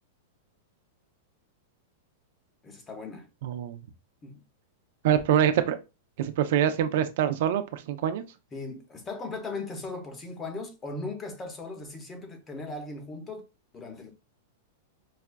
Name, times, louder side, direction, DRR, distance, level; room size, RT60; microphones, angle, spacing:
voice 1, 2.6-3.3 4.2-4.4 8.5-13.4 13.7-14.1, left 3 dB, 20° left, 1.0 m, -38 dB
voice 2, 3.4-3.8 5.0-5.8 6.2-8.2, right 10 dB, 65° right, 0.5 m, -25 dB
4.8 x 2.3 x 2.2 m
hypercardioid pair, 125°, 0 cm